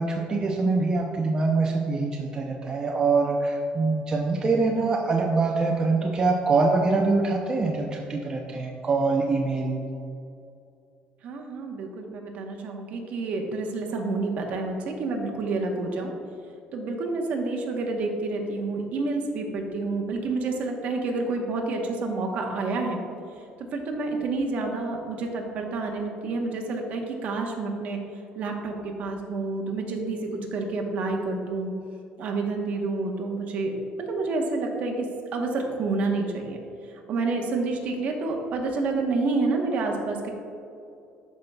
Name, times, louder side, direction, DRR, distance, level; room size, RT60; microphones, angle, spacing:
voice 1, 0.0-9.8, right 3 dB, 25° right, 0 dB, 0.5 m, -24 dB
voice 2, 11.2-16.1 16.7-23.0 23.7-28.0 28.4-30.2 30.5-31.7 32.2-33.7 34.0-36.6 37.1-40.3, right 3 dB, 55° right, 2 dB, 1.0 m, -29 dB
12.0 x 5.4 x 2.3 m, 2.7 s
cardioid pair, 130°, 3 cm